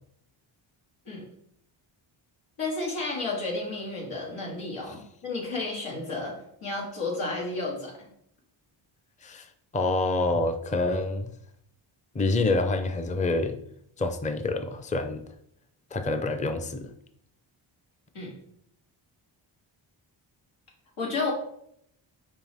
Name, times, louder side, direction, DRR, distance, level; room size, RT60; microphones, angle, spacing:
voice 1, 2.6-6.3 6.6-8.1 18.1-18.3 21.0-21.3, left 3 dB, 85° left, -2 dB, 2.2 m, -32 dB
voice 2, 9.2-11.3 12.1-13.6 14.0-15.2 15.9-16.9, left 2 dB, 15° left, 7 dB, 0.5 m, -27 dB
6.0 x 4.6 x 3.5 m, 0.71 s
cardioid pair, 75°, 49 cm